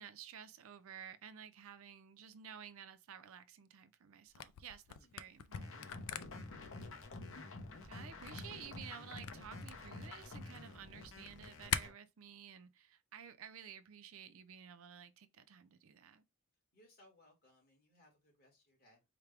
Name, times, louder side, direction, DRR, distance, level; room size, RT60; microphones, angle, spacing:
voice 1, 0.0-5.9 7.8-16.2, right 8 dB, 65° right, 0.4 m, -53 dB
Camera, 4.3-11.8, left 10 dB, 90° left, 0.4 m, -44 dB
sound 1, 5.5-11.9, left 2 dB, 60° left, 0.8 m, -49 dB
voice 2, 16.7-19.0, left 1 dB, 45° left, 1.7 m, -67 dB
4.8 x 2.2 x 3.3 m
head